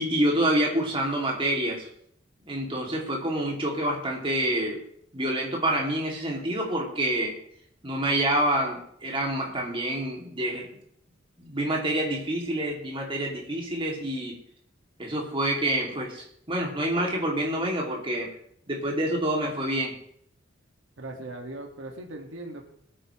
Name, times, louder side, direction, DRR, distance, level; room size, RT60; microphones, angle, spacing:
voice 1, 0.0-1.9 2.5-4.8 5.1-7.4 7.8-10.7 11.4-14.4 15.0-18.3 18.7-20.0, right 1 dB, 30° right, -2 dB, 2.8 m, -27 dB
voice 2, 21.0-22.6, right 2 dB, 85° right, 1 dB, 2.1 m, -39 dB
22.0 x 8.9 x 3.3 m, 0.67 s
head